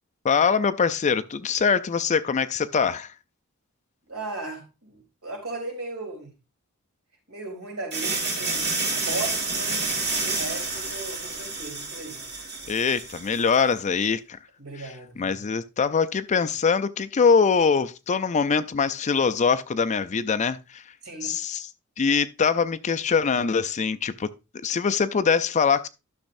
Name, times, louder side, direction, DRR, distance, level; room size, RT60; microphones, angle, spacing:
voice 1, 0.2-3.1 12.7-14.4 15.2-20.8 21.2-21.7 22.0-25.9, left 5 dB, 30° left, 0.4 m, -23 dB
voice 2, 4.1-6.3 7.3-9.9 10.2-12.2 14.6-15.4 21.0-21.3, right 3 dB, 70° right, 3.5 m, -37 dB
sound 1, 7.9-13.6, right 3 dB, 50° right, 2.6 m, -29 dB
12.0 x 6.4 x 2.6 m
head